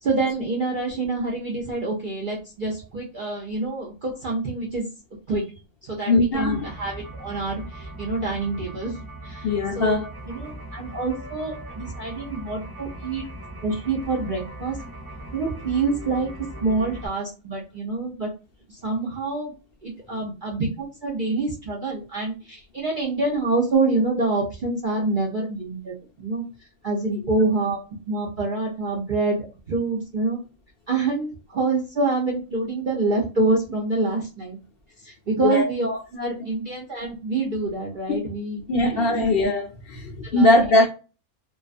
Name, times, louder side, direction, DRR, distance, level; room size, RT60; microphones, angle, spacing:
voice 1, 0.0-4.9 5.3-5.4 5.8-8.9 9.2-13.2 13.6-14.8 15.3-16.3 16.6-18.3 18.7-19.5 19.8-26.4 26.8-27.8 28.1-30.4 30.9-34.6 35.0-39.3 40.3-40.5, right 3 dB, 65° right, 0.5 m, -26 dB
voice 2, 6.1-6.6 9.4-10.1 35.3-35.7 38.1-38.2 38.7-40.9, left 2 dB, 75° left, 0.5 m, -20 dB
sound 1, 6.3-17.1, right 1 dB, 20° right, 0.7 m, -39 dB
2.3 x 2.3 x 2.4 m
omnidirectional pair, 1.5 m